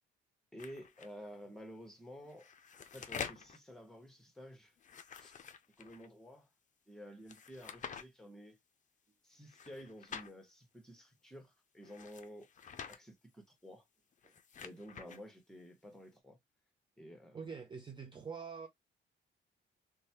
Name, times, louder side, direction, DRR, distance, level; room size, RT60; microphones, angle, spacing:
voice 1, 0.5-2.5 2.9-4.7 5.2-5.3 5.8-6.5 6.9-8.6 9.2-12.5 12.9-13.8 14.6-16.4 17.0-17.4, equal, ahead, 1.2 m, -52 dB
sound 1, 0.6-1.1 2.2-3.6 4.8-6.1 7.3-8.0 9.5-10.3 11.8-13.0 14.1-15.2, left 7 dB, 40° left, 0.5 m, -47 dB
voice 2, 17.3-18.7, right 6 dB, 25° right, 0.5 m, -45 dB
3.1 x 2.2 x 2.8 m
cardioid pair, 90°, 20 cm